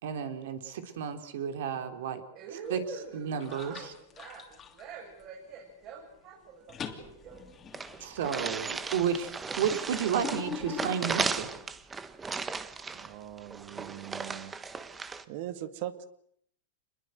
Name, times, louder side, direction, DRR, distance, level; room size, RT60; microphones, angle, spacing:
voice 1, 0.0-2.2 2.7-2.8 3.1-3.9 8.0-9.3 9.6-11.5, right 8 dB, 70° right, 7 dB, 3.8 m, -32 dB
voice 2, 2.3-7.5, right 5 dB, 35° right, -1 dB, 7.1 m, -45 dB
sound 1, 2.6-3.0 3.4-5.5 5.9-6.2 6.4-11.7, left 7 dB, 20° left, 3.0 m, -44 dB
sound 2, 7.0-7.1 7.3-7.4 7.7-15.2, right 4 dB, 15° right, 1.2 m, -36 dB
voice 3, 12.9-14.6 15.3-16.1, right 12 dB, 50° right, 11 dB, 2.1 m, -40 dB
27.0 x 21.5 x 8.0 m, 0.70 s
supercardioid pair, 150°, 0 cm